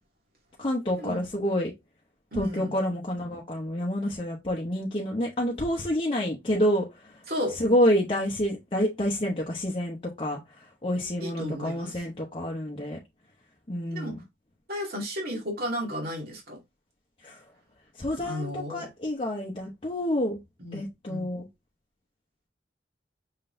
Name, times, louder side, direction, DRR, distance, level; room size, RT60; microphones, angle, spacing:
voice 1, 0.6-1.7 2.3-7.2 7.6-13.0 13.7-14.2 17.2-17.4 18.0-20.4 20.7-21.5, equal, 30° left, 0.8 m, -28 dB
voice 2, 2.3-2.7 7.3-7.6 11.2-12.0 13.9-14.1 14.7-16.6 18.2-18.9 20.6-20.8 21.1-21.3, equal, 55° right, 2.2 m, -33 dB
5.6 x 3.7 x 2.5 m
head